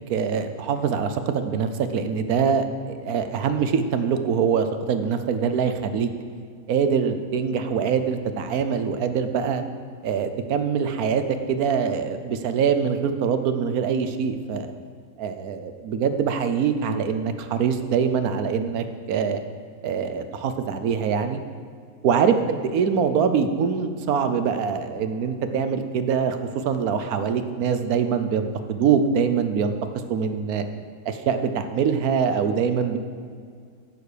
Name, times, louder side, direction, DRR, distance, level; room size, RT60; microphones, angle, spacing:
voice 1, 0.1-6.1 6.7-9.6 10.0-11.2 11.5-14.7 15.2-19.4 19.8-21.4 22.0-26.4 26.6-29.7 30.1-30.6 31.1-33.0, right 6 dB, 80° right, 9 dB, 1.2 m, -24 dB
13.5 x 7.0 x 5.0 m, 2.1 s
omnidirectional pair, 1.5 m